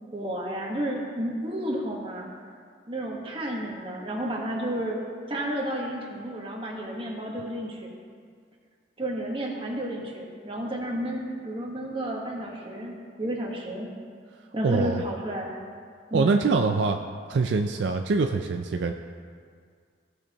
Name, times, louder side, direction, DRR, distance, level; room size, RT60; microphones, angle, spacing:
voice 1, 0.1-2.3 2.9-7.9 9.0-13.9 14.5-15.5 16.1-16.6, right 1 dB, 30° right, -2 dB, 1.3 m, -32 dB
voice 2, 14.6-15.0 16.1-17.0 17.3-18.9, right 4 dB, 70° right, 5 dB, 0.4 m, -24 dB
16.5 x 6.4 x 3.0 m, 2.1 s
head